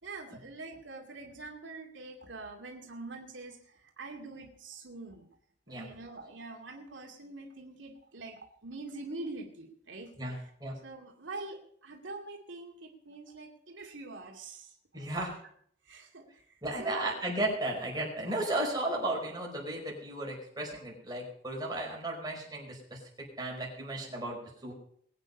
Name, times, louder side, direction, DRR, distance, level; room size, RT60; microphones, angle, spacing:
voice 1, 0.0-5.3 5.7-10.5 10.8-14.8 15.1-15.2 15.8-17.2, right 2 dB, 80° right, 1 dB, 2.4 m, -45 dB
voice 2, 10.2-10.8 14.9-15.3 16.6-23.0 23.4-24.7, right 1 dB, 20° right, -2 dB, 5.0 m, -34 dB
21.0 x 9.1 x 5.4 m, 0.63 s
head